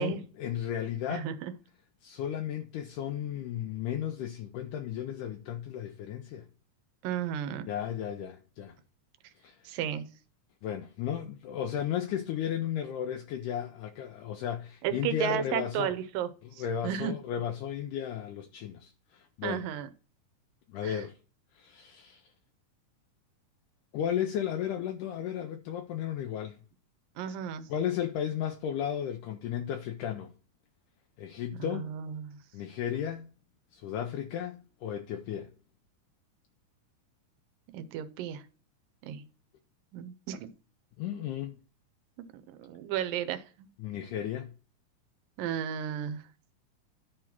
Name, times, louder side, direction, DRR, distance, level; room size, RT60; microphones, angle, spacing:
voice 1, 0.0-1.3 2.0-6.5 7.7-8.8 9.4-9.7 10.6-15.9 16.4-19.7 20.7-21.1 21.5-22.3 23.9-26.6 27.2-27.3 27.7-30.3 31.2-31.9 32.5-33.3 33.7-35.5 41.0-41.6 43.8-44.5, left 9 dB, 80° left, 2.0 m, -34 dB
voice 2, 1.1-1.5 7.0-7.7 9.7-10.1 14.8-17.1 19.4-19.9 20.8-21.0 27.2-27.7 31.7-32.4 37.7-38.4 39.0-39.2 39.9-40.5 42.3-43.7 45.4-46.2, right 10 dB, 85° right, 2.4 m, -34 dB
11.0 x 3.8 x 5.9 m
omnidirectional pair, 3.9 m